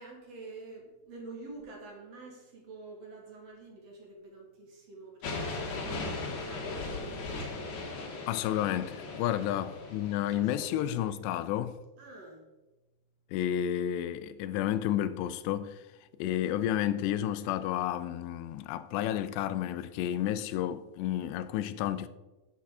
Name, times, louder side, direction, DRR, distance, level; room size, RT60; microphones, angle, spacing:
voice 1, 0.0-8.2 9.4-9.6 10.4-10.7 12.0-12.5, right 3 dB, 50° right, 2.2 m, -48 dB
sound 1, 5.2-11.1, left 3 dB, 55° left, 2.6 m, -38 dB
voice 2, 8.3-11.8 13.3-15.8 16.2-22.1, left 11 dB, 90° left, 2.8 m, -31 dB
8.5 x 8.2 x 4.9 m
omnidirectional pair, 4.8 m